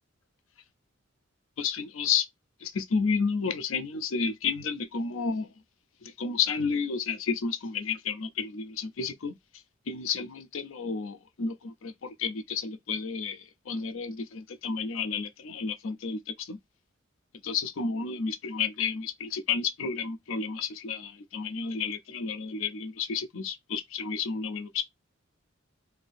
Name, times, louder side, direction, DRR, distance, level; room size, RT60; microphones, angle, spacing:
voice 1, 1.6-2.3 2.6-5.5 6.0-9.4 9.9-16.6 17.4-24.8, left 5 dB, 80° left, 0.5 m, -31 dB
2.7 x 2.6 x 3.3 m
head